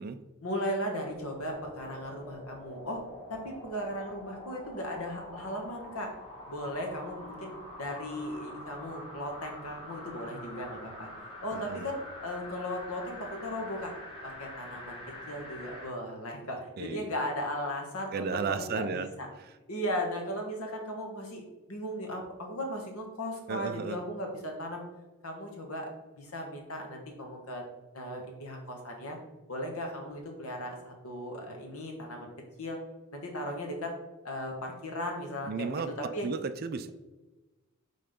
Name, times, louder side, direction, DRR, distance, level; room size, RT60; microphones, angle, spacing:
voice 1, 0.4-3.0 3.3-6.1 6.5-11.1 11.4-13.9 14.2-15.0 15.3-19.3 19.7-24.8 25.2-25.9 26.2-27.6 27.9-29.2 29.5-32.3 32.6-32.8 33.1-33.9 34.2-35.8 36.1-36.3, equal, 75° left, 2 dB, 1.4 m, -37 dB
sound 1, 1.0-15.9 16.4-16.5, left 1 dB, 25° left, 1.4 m, -46 dB
voice 2, 11.5-11.9 16.8-17.1 18.1-19.1 19.4-19.5 23.5-24.0 35.5-36.9, right 5 dB, 45° right, 11 dB, 0.4 m, -34 dB
5.5 x 3.8 x 5.1 m, 1.1 s
head